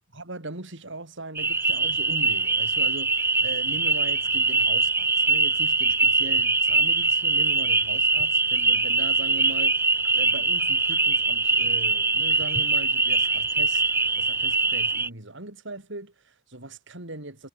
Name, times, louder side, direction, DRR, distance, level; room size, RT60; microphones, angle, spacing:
voice 1, 0.1-13.8 14.2-17.5, right 2 dB, 65° right, 4.7 m, -39 dB
sound 1, 1.3-15.1, right 3 dB, 10° right, 0.3 m, -23 dB
head